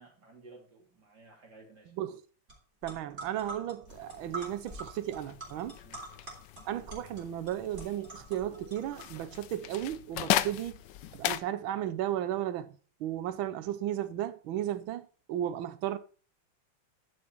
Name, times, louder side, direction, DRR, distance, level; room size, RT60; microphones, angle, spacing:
voice 1, 0.0-1.9 5.8-6.0 10.4-10.6, right 2 dB, 55° right, 3.7 m, -55 dB
sound 1, 2.5-2.6 2.8-9.4, right 2 dB, 35° right, 3.8 m, -45 dB
voice 2, 2.8-5.8 6.7-10.8 11.1-12.7 13.0-16.0, right 11 dB, 80° right, 1.6 m, -34 dB
sound 2, 3.9-11.4, left 13 dB, 75° left, 1.2 m, -37 dB
11.0 x 6.2 x 4.5 m
omnidirectional pair, 2.2 m